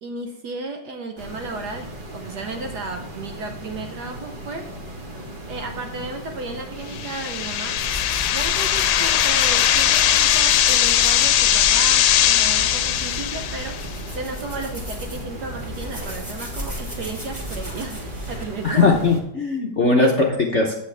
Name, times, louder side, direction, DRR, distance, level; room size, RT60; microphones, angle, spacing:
voice 1, 0.0-4.7 5.5-7.8 8.3-13.9 14.1-19.1 20.0-20.1, right 3 dB, 65° right, 4 dB, 1.1 m, -33 dB
sound 1, 1.2-19.2, right 1 dB, 30° right, 1.0 m, -37 dB
sound 2, 6.9-13.9, left 11 dB, 80° left, 1.4 m, -19 dB
sound 3, 7.8-18.4, equal, 5° right, 2.2 m, -34 dB
voice 2, 18.6-20.7, left 3 dB, 50° left, -1 dB, 0.8 m, -19 dB
8.2 x 8.1 x 3.4 m, 0.82 s
omnidirectional pair, 2.4 m